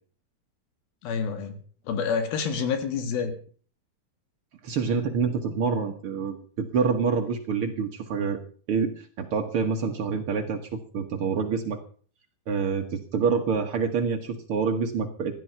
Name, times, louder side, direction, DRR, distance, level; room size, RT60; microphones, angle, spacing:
voice 1, 1.0-1.6 1.9-3.3, left 6 dB, 75° left, 9 dB, 3.6 m, -28 dB
voice 2, 4.6-8.4 8.7-11.8 12.5-15.3, right 5 dB, 80° right, 5 dB, 1.2 m, -27 dB
16.0 x 12.0 x 5.5 m, 0.43 s
omnidirectional pair, 4.4 m